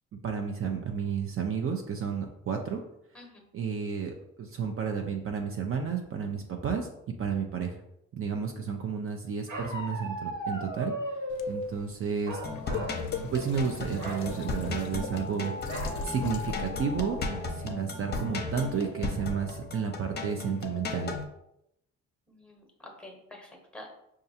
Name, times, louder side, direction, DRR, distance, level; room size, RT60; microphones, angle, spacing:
voice 1, 0.2-2.8 3.5-6.9 7.2-7.8 8.1-11.2 11.5-12.4 13.3-15.5 16.0-17.2 17.5-21.2, right 6 dB, 45° right, 3 dB, 0.5 m, -32 dB
Bark, 9.5-11.6 12.2-13.0 13.3-13.5 13.9-14.3 15.7-16.0 16.5-16.6 16.9-17.4, right 1 dB, 75° right, 1.4 m, -36 dB
sound 1, 11.3-17.5, left 5 dB, 70° left, 0.5 m, -40 dB
sound 2, 12.4-21.2, left 3 dB, 35° left, 0.7 m, -36 dB
voice 2, 22.3-24.0, left 1 dB, 5° left, 1 dB, 1.0 m, -48 dB
5.3 x 2.4 x 2.7 m, 0.81 s
cardioid pair, 90°, 30 cm